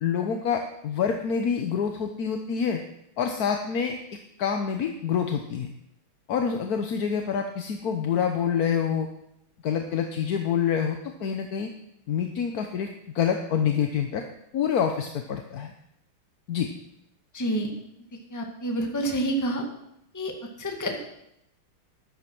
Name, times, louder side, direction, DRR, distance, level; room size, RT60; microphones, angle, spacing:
voice 1, 0.0-2.8 3.2-4.0 4.4-5.7 6.3-9.1 9.6-11.7 12.1-12.9 13.1-14.2 14.5-15.7 16.5-16.7, left 7 dB, 55° left, 5 dB, 1.3 m, -26 dB
voice 2, 17.3-17.7 18.3-19.6 20.1-20.3 20.6-21.0, right 1 dB, 10° left, 2 dB, 1.7 m, -28 dB
14.0 x 11.0 x 6.0 m, 0.80 s
omnidirectional pair, 2.3 m